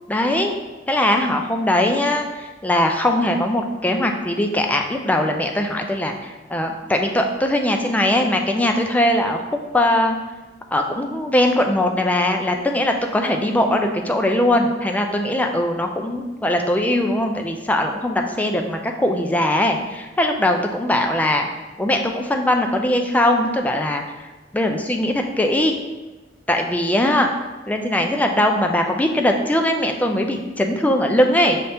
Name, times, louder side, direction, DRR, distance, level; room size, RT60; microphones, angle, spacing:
voice 1, 0.1-0.5 0.9-9.5 9.7-10.2 10.7-21.5 21.8-24.0 24.5-25.8 26.5-27.3 27.7-31.6, left 1 dB, 10° left, 3 dB, 0.3 m, -20 dB
5.6 x 2.7 x 3.4 m, 1.2 s
head